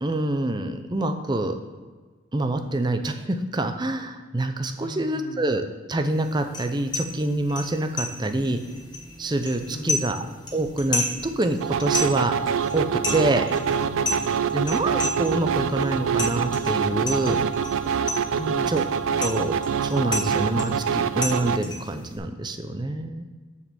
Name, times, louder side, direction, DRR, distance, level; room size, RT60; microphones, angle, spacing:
voice 1, 0.0-1.6 2.3-8.6 9.2-10.2 10.5-12.3 12.7-13.4 14.5-17.4 18.7-18.8 19.2-19.5 19.8-23.2, right 2 dB, 20° right, 7 dB, 0.5 m, -26 dB
voice 2, 4.8-5.5 9.7-10.2 13.8-14.3 18.4-18.8, left 1 dB, 40° left, 10 dB, 0.5 m, -37 dB
sound 1, 6.1-22.2, left 2 dB, 20° left, 1.2 m, -34 dB
sound 2, 11.6-21.6, right 7 dB, 75° right, 0.3 m, -25 dB
6.7 x 5.1 x 6.9 m, 1.4 s
head